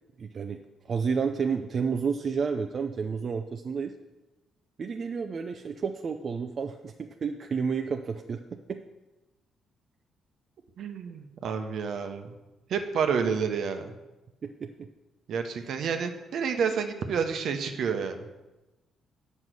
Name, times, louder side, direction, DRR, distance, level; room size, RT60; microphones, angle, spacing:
voice 1, 0.2-0.6 0.8-3.9 4.8-8.8 14.4-14.9 15.6-15.7, right 5 dB, 45° right, 5 dB, 0.5 m, -31 dB
voice 2, 10.8-12.3 12.7-14.0 15.3-18.3, right 6 dB, 70° right, 6 dB, 0.9 m, -29 dB
8.1 x 5.4 x 6.2 m, 1.1 s
cardioid pair, 90°, 0 cm